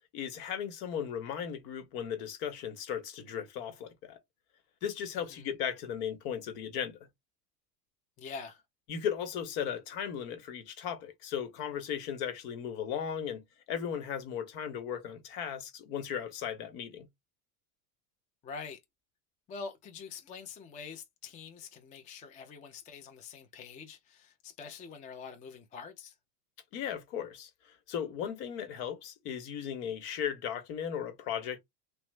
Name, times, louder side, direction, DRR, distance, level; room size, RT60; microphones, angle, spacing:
voice 1, 0.1-4.2 4.8-7.0 8.9-13.4 13.7-17.1 26.7-31.6, left 8 dB, 70° left, 1.0 m, -36 dB
voice 2, 8.2-8.6 18.4-18.8 19.5-26.1, left 5 dB, 15° left, 0.3 m, -45 dB
3.0 x 2.1 x 3.1 m
supercardioid pair, 115°, 47 cm